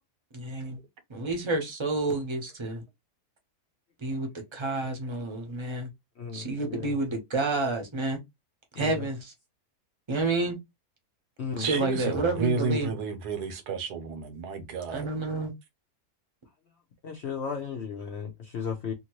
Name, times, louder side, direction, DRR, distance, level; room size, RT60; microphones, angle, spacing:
voice 1, 0.3-0.8 1.1-2.8 4.0-5.9 6.3-8.2 8.8-9.3 10.1-10.6 11.6-12.9 14.9-15.5, right 3 dB, 25° right, 0.6 m, -29 dB
voice 2, 6.2-6.9 8.7-9.1 11.4-11.7 17.0-18.9, left 6 dB, 65° left, 0.7 m, -35 dB
voice 3, 11.6-15.1, right 4 dB, 80° right, 1.3 m, -31 dB
2.8 x 2.5 x 3.0 m
omnidirectional pair, 1.7 m